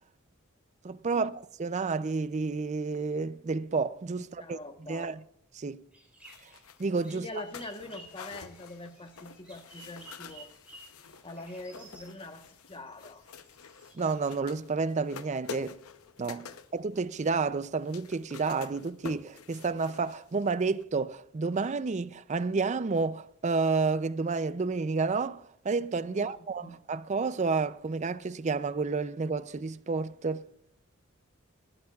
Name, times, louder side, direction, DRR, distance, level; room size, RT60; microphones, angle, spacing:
voice 1, 0.8-4.6 4.9-5.2 5.5-5.9 6.8-7.3 14.0-15.8 16.2-30.4, right 4 dB, 30° right, 0.4 m, -30 dB
voice 2, 4.2-5.1 7.1-10.5 11.2-13.2 16.3-16.6 26.1-26.8, left 2 dB, 25° left, 1.1 m, -44 dB
sound 1, 5.9-12.2 12.7-14.2, right 2 dB, 5° right, 4.0 m, -54 dB
sound 2, 6.2-20.5 20.8-20.9, left 5 dB, 75° left, 0.8 m, -48 dB
19.5 x 13.0 x 2.4 m
head